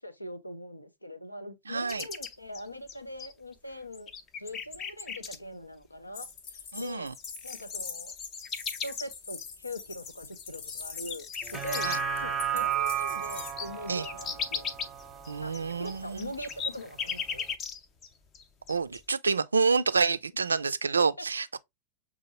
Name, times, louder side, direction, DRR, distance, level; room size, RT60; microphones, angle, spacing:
voice 1, 0.0-4.1 4.4-7.1 7.4-8.2 8.8-11.9 12.2-14.7 15.4-15.5 15.8-17.5 21.2-21.3, left 1 dB, 85° left, 0.6 m, -41 dB
voice 2, 1.7-2.1 6.7-7.1 11.8-12.0 13.9-14.0 15.3-16.3 18.7-21.6, right 5 dB, 75° right, 0.3 m, -28 dB
sound 1, 1.9-3.5 3.9-5.4 6.5-6.6 6.9-12.2 12.6-12.7 13.0-18.1 18.3-19.0, left 6 dB, 30° left, 0.6 m, -37 dB
sound 2, 6.1-13.5, left 6 dB, 50° left, 0.8 m, -43 dB
sound 3, 11.4-16.0 16.4-16.5, right 8 dB, 15° right, 0.8 m, -33 dB
6.7 x 2.5 x 2.9 m
figure-of-eight pair, 90°, 0 cm